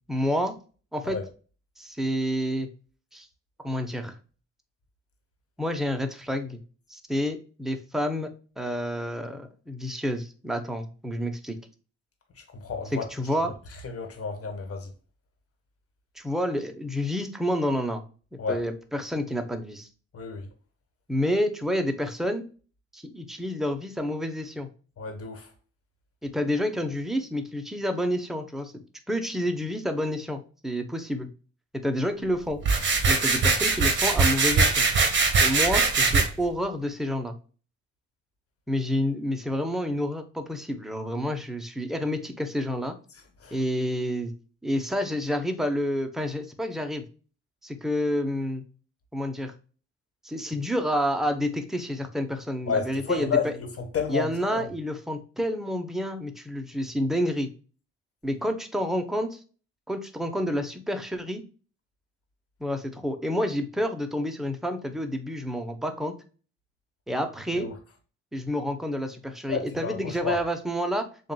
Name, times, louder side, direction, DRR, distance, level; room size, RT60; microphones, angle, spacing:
voice 1, 0.1-0.5 0.9-1.2 1.8-2.7 3.1-3.3 3.6-4.2 5.6-6.6 6.9-8.3 8.6-11.6 12.9-13.5 16.2-18.0 18.3-19.9 21.1-22.4 22.9-24.7 26.2-28.7 29.1-31.3 31.8-32.6 33.1-34.9 35.4-37.3 38.7-42.9 43.5-44.3 44.6-47.0 47.6-48.6 49.1-49.5 50.2-53.5 54.1-57.5 58.2-59.4 59.9-61.4 62.6-66.1 67.1-67.7 68.3-71.3, equal, ahead, 0.8 m, -29 dB
voice 2, 12.5-13.0 13.8-14.9 18.4-18.6 20.1-20.5 25.0-25.5 43.4-43.6 52.7-54.7 67.5-67.7 69.5-70.4, left 5 dB, 50° left, 1.5 m, -31 dB
sound 1, 32.6-36.2, right 4 dB, 40° right, 1.4 m, -21 dB
7.1 x 2.6 x 2.2 m
cardioid pair, 90°, 30 cm